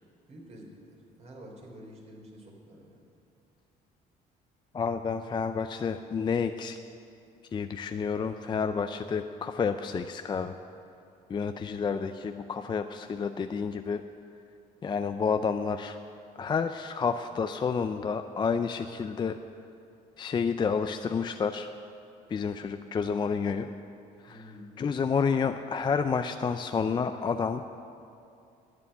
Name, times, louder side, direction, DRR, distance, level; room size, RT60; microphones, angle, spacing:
voice 1, 0.3-3.0 11.6-11.9 24.3-24.7, equal, 40° right, 0 dB, 3.5 m, -49 dB
voice 2, 4.7-6.8 7.5-10.6 11.3-14.0 14.8-16.0 16.4-19.4 20.2-21.7 22.3-23.7 24.2-24.5 24.8-27.6, left 5 dB, 25° left, 8 dB, 0.4 m, -30 dB
11.0 x 8.4 x 9.9 m, 2.6 s
cardioid pair, 110°, 17 cm